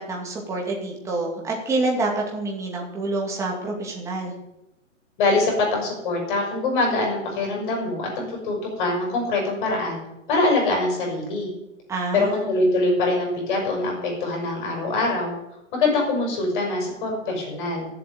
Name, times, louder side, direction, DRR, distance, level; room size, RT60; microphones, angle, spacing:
voice 1, 0.0-4.3 11.9-12.6, right 2 dB, 5° right, -2 dB, 2.4 m, -27 dB
voice 2, 5.2-10.0 10.3-11.5 12.1-15.3 15.7-17.9, left 2 dB, 40° left, 1 dB, 6.7 m, -23 dB
13.5 x 8.3 x 9.3 m, 0.93 s
hypercardioid pair, 165°, 39 cm